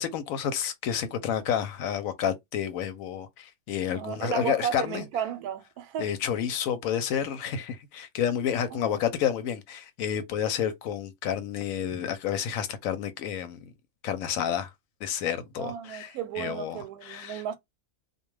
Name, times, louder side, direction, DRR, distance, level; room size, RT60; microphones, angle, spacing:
voice 1, 0.0-5.0 6.0-13.6 14.0-14.7 15.0-17.6, left 9 dB, 75° left, 0.9 m, -30 dB
voice 2, 3.9-6.2 8.7-9.0 15.6-17.6, right 8 dB, 90° right, 1.1 m, -34 dB
2.4 x 2.2 x 3.0 m
omnidirectional pair, 1.5 m